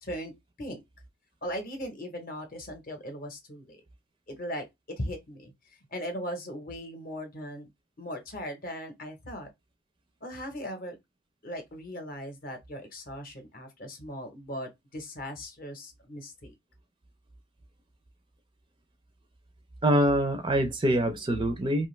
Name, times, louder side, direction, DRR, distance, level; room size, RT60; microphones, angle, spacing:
voice 1, 0.0-0.3 0.6-0.8 1.4-3.8 4.3-4.6 5.0-5.5 5.9-7.7 8.0-9.5 10.2-11.0 11.4-16.5, equal, 45° left, 0.7 m, -38 dB
voice 2, 19.8-21.9, right 1 dB, 25° right, 0.4 m, -24 dB
2.5 x 2.3 x 3.0 m
head